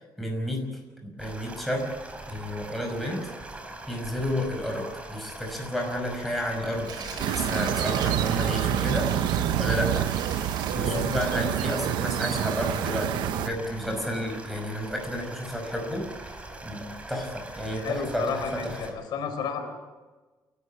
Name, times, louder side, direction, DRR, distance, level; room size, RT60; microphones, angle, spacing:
voice 1, 0.2-0.7 1.0-1.9 2.3-3.3 3.9-6.9 7.2-9.2 9.6-10.1 10.7-16.3 16.6-18.8, equal, ahead, 1 dB, 5.7 m, -31 dB
sound 1, 1.2-18.9, right 2 dB, 15° right, 3.7 m, -42 dB
Tearing, 6.8-11.9 12.3-12.4, right 4 dB, 60° right, 6.8 m, -38 dB
sound 2, 7.2-13.5, right 11 dB, 85° right, 0.9 m, -27 dB
voice 2, 10.7-11.2 17.8-19.7, left 6 dB, 75° left, 6 dB, 4.4 m, -32 dB
28.5 x 12.5 x 8.7 m, 1.2 s
cardioid pair, 145°, 7 cm